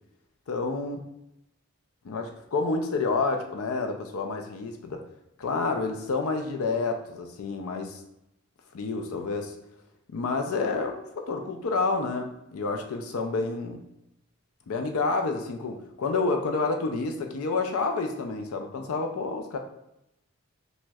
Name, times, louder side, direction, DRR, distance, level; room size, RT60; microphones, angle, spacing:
voice 1, 0.5-1.0 2.0-5.0 5.4-8.0 8.7-9.5 10.1-13.8 14.7-19.6, left 3 dB, 75° left, 5 dB, 0.4 m, -29 dB
5.9 x 2.1 x 2.3 m, 0.87 s
head